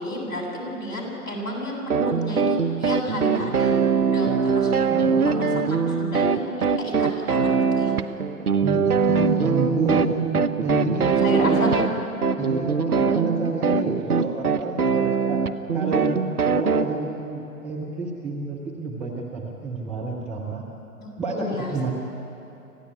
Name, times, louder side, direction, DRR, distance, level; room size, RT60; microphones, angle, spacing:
voice 1, 0.0-4.7 5.3-5.5 6.0-7.9 11.2-11.9 14.9-15.0 21.0-21.1 21.4-21.7, left 1 dB, 55° left, 0 dB, 7.8 m, -31 dB
sound 1, 1.9-16.9, right 5 dB, 70° right, 1.2 m, -22 dB
voice 2, 8.6-11.9 12.4-15.4 15.7-16.2 16.5-20.6 21.2-21.9, right 3 dB, 5° right, -7 dB, 0.5 m, -29 dB
25.5 x 16.5 x 9.8 m, 2.9 s
figure-of-eight pair, 125°, 46 cm